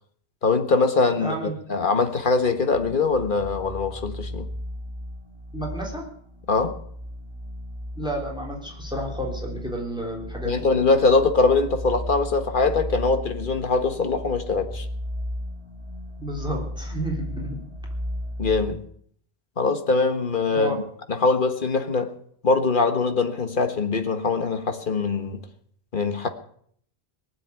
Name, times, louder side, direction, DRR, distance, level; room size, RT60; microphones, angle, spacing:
voice 1, 0.4-1.3 1.7-4.5 6.5-6.8 10.4-14.8 18.4-18.8 19.6-20.8 21.2-22.1 22.4-25.4 25.9-26.3, left 3 dB, 55° left, 7 dB, 1.6 m, -22 dB
voice 2, 1.1-1.5 5.5-6.1 7.9-10.7 16.2-17.6 20.5-20.7, right 1 dB, 5° right, 0 dB, 3.7 m, -31 dB
sound 1, 2.7-18.8, left 1 dB, 30° right, 3.6 m, -35 dB
19.5 x 7.8 x 9.6 m, 0.64 s
omnidirectional pair, 1.0 m